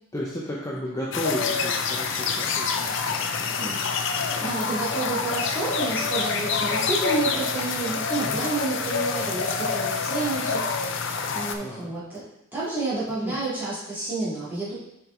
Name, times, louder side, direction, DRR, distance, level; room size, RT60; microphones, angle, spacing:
voice 1, 0.1-3.6 4.1-4.4 8.2-8.4 11.6-11.9 13.2-13.4, left 1 dB, 15° left, -5 dB, 0.7 m, -34 dB
sound 1, 1.1-11.6, left 5 dB, 60° left, 0.5 m, -27 dB
voice 2, 3.5-3.8 4.2-14.8, right 3 dB, 10° right, -9 dB, 2.3 m, -30 dB
6.3 x 4.7 x 3.8 m, 0.84 s
head